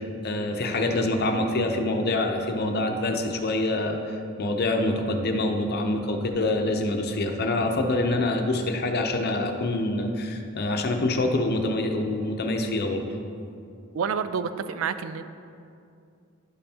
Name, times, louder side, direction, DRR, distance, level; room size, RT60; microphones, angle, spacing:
voice 1, 0.0-13.0, left 2 dB, 50° left, 4 dB, 0.6 m, -26 dB
voice 2, 13.9-15.2, right 6 dB, 75° right, 12 dB, 0.4 m, -28 dB
11.5 x 5.4 x 2.8 m, 2.4 s
head